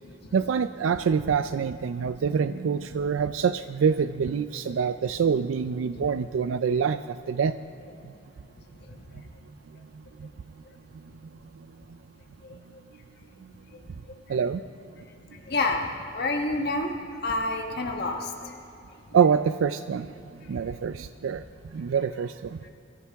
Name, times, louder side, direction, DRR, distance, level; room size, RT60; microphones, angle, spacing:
voice 1, 0.3-7.6 10.2-10.3 14.3-14.6 19.1-20.1 20.5-22.7, right 6 dB, 85° right, 11 dB, 0.4 m, -26 dB
voice 2, 12.4-12.8 13.7-13.8 14.3-14.4 15.3-18.5 22.6-22.7, left 2 dB, 55° left, 2 dB, 1.2 m, -29 dB
23.0 x 14.0 x 3.5 m, 2.7 s
head